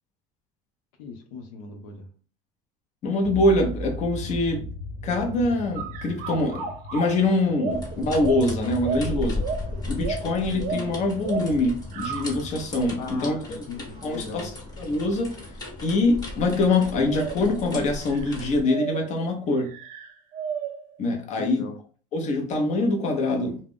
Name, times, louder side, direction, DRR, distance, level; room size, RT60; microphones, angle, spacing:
voice 1, 1.0-2.1 10.5-10.9 13.0-14.5 21.4-21.8, left 4 dB, 85° left, 0.6 m, -38 dB
voice 2, 3.0-4.6 5.0-6.6 6.9-9.4 9.9-13.7 14.0-14.5 14.8-15.3 15.8-19.7 21.0-21.6 22.1-23.6, left 2 dB, 40° left, 0.7 m, -24 dB
sound 1, 3.2-9.2, left 1 dB, 15° right, 0.8 m, -37 dB
sound 2, 5.7-12.4 13.1-13.2 14.0-14.4 15.3-15.4 16.6-16.8 17.0-17.6 18.1-19.2 19.7-21.0, right 5 dB, 50° right, 0.6 m, -34 dB
sound 3, 7.7-18.6, left 1 dB, 20° left, 1.2 m, -35 dB
2.3 x 2.0 x 3.5 m
supercardioid pair, 120°, 19 cm